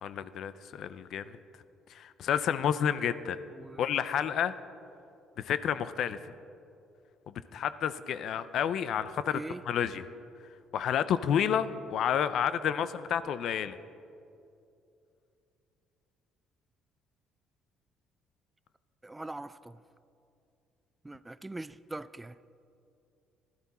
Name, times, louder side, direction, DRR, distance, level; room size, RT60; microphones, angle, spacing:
voice 1, 0.0-1.4 1.9-3.4 3.8-4.5 5.4-6.3 7.5-9.4 9.7-10.0 10.7-13.8, left 8 dB, 65° left, 0.5 m, -30 dB
voice 2, 3.5-3.8 9.3-9.6 19.0-19.8 21.0-22.4, right 2 dB, 15° right, 0.3 m, -41 dB
16.0 x 12.5 x 4.2 m
cardioid pair, 100°, 0 cm